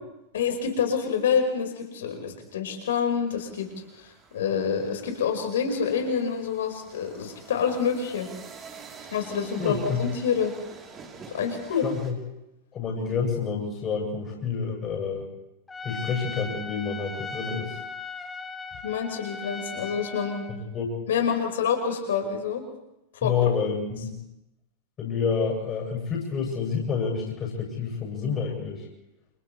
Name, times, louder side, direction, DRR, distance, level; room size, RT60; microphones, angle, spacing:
voice 1, 0.3-3.7 4.0-8.3 9.1-10.5 11.3-11.8 18.8-20.4 21.1-22.6 23.2-23.6, left 7 dB, 60° left, 3 dB, 5.2 m, -27 dB
sound 1, 3.3-12.1, right 5 dB, 25° right, 3.7 m, -47 dB
voice 2, 9.6-10.0 11.8-12.1 12.7-15.2 15.8-17.8 20.5-20.9 23.2-24.1 25.0-28.9, left 5 dB, 30° left, -2 dB, 7.5 m, -28 dB
Trumpet, 15.7-20.6, left 4 dB, 10° left, 1.6 m, -38 dB
30.0 x 28.5 x 3.3 m, 0.90 s
figure-of-eight pair, 90°, 0 cm